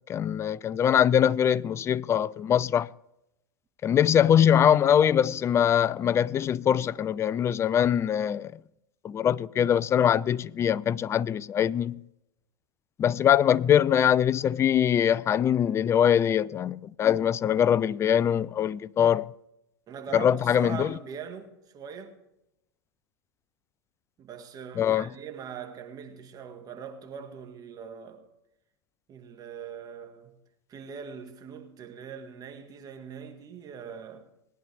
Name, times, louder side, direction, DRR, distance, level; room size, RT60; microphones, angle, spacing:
voice 1, 0.1-2.9 3.8-8.5 9.0-12.0 13.0-19.3 20.1-20.9 24.8-25.1, left 9 dB, 20° left, 0.3 m, -23 dB
voice 2, 19.9-22.2 24.2-28.2 29.1-30.4 30.7-34.3, right 7 dB, 30° right, 1.8 m, -41 dB
19.0 x 10.5 x 3.5 m
hypercardioid pair, 110°, 13 cm